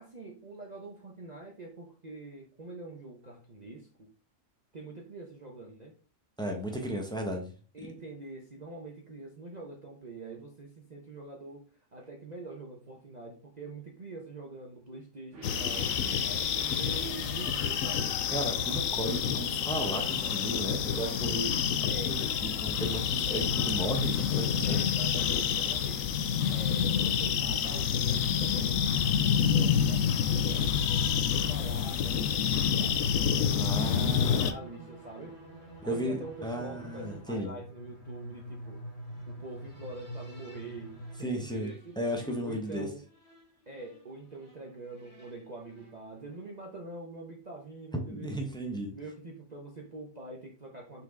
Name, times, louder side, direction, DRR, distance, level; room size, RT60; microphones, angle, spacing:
voice 1, 0.0-4.1 4.7-5.9 7.7-11.6 11.9-15.9 16.2-18.1 21.8-22.2 23.3-23.5 24.6-26.2 26.5-33.0 33.4-35.4 35.8-38.8 39.3-42.0 42.4-43.0 43.7-48.3 48.9-51.0, right 2 dB, 35° right, 0 dB, 1.0 m, -45 dB
voice 2, 6.4-7.5 16.0-16.2 18.3-24.9 33.6-34.4 35.8-37.6 41.2-41.7 42.0-42.9 48.1-48.9, right 1 dB, 5° left, 2 dB, 1.3 m, -35 dB
sound 1, 15.3-20.8, right 4 dB, 60° right, 1.7 m, -50 dB
sound 2, 15.4-34.5, left 8 dB, 80° left, 1.1 m, -28 dB
sound 3, 27.6-46.6, right 1 dB, 50° left, 2.6 m, -48 dB
5.9 x 4.5 x 3.8 m, 0.38 s
omnidirectional pair, 1.4 m